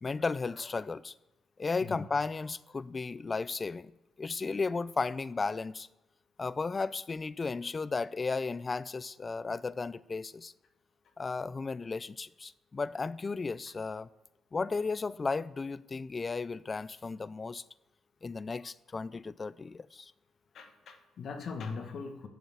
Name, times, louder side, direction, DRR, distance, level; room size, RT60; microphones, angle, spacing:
voice 1, 0.0-1.1 1.6-3.9 4.2-5.9 6.4-10.5 11.2-14.1 14.5-17.6 18.2-20.1, left 4 dB, 30° left, 0.4 m, -34 dB
voice 2, 20.5-22.3, left 5 dB, 60° left, 1.5 m, -40 dB
9.2 x 7.2 x 7.3 m
cardioid pair, 90°, 0 cm